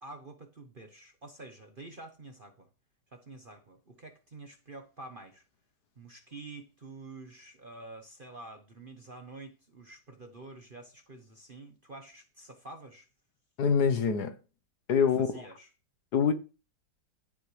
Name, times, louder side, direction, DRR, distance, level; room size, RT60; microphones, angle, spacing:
voice 1, 0.0-2.7 3.1-5.4 6.0-13.1 14.9-15.7, right 2 dB, 35° right, 1.0 m, -48 dB
voice 2, 13.6-14.4 14.9-15.3 16.1-16.3, left 6 dB, 60° left, 1.4 m, -25 dB
15.5 x 5.9 x 3.2 m
omnidirectional pair, 2.0 m